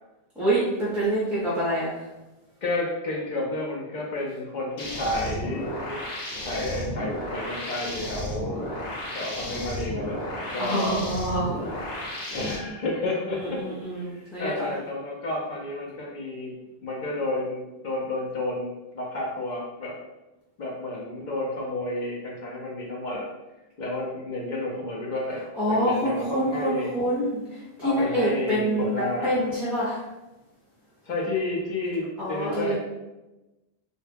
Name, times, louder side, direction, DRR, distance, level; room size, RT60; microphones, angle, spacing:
voice 1, 0.4-2.1 10.6-11.6 13.3-14.7 25.5-30.1 32.2-32.8, right 1 dB, ahead, -9 dB, 0.4 m, -26 dB
voice 2, 2.6-6.0 6.4-8.6 9.1-11.1 11.8-13.6 14.0-16.5 16.8-19.9 20.6-23.2 23.8-26.9 27.8-29.3 31.0-32.8, left 2 dB, 55° left, -3 dB, 0.6 m, -31 dB
sound 1, 4.8-12.6, left 1 dB, 90° left, 1.0 m, -33 dB
2.2 x 2.0 x 3.2 m, 1.0 s
omnidirectional pair, 1.0 m